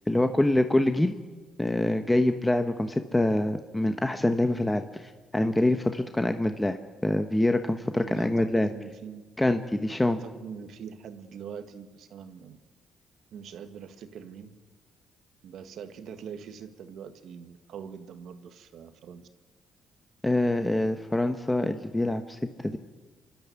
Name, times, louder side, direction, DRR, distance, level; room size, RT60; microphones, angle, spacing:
voice 1, 0.1-1.2 1.6-8.7 9.4-10.2 20.2-22.8, left 1 dB, 10° left, 7 dB, 1.1 m, -25 dB
voice 2, 8.0-9.3 10.2-12.6 13.3-14.6 15.4-19.3, right 7 dB, 75° right, 8 dB, 1.7 m, -43 dB
27.0 x 12.5 x 9.5 m, 1.3 s
cardioid pair, 90°, 0 cm